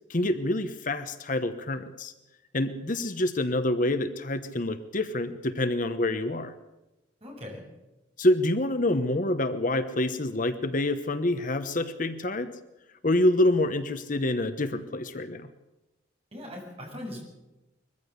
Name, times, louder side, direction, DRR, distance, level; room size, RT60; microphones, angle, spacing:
voice 1, 0.1-2.1 2.5-6.5 8.2-12.5 13.0-15.5, left 1 dB, 45° left, 10 dB, 1.1 m, -27 dB
voice 2, 7.2-7.6 16.3-17.2, left 1 dB, 30° right, 0 dB, 7.0 m, -39 dB
22.0 x 15.0 x 8.2 m, 1.0 s
head